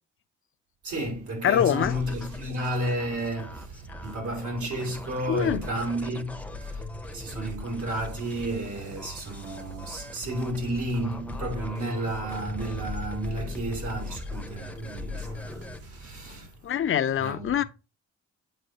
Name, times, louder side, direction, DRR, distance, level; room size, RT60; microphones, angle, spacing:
voice 1, 0.8-16.6 17.2-17.5, right 1 dB, 75° right, 2.7 m, -32 dB
sound 1, 1.0-16.5, right 3 dB, 50° right, 1.1 m, -48 dB
voice 2, 1.4-1.9 5.3-5.6 16.6-17.6, left 9 dB, 45° left, 0.5 m, -24 dB
sound 2, 1.6-15.8, left 3 dB, 5° left, 0.7 m, -40 dB
7.8 x 4.6 x 2.8 m
cardioid pair, 90°, 30 cm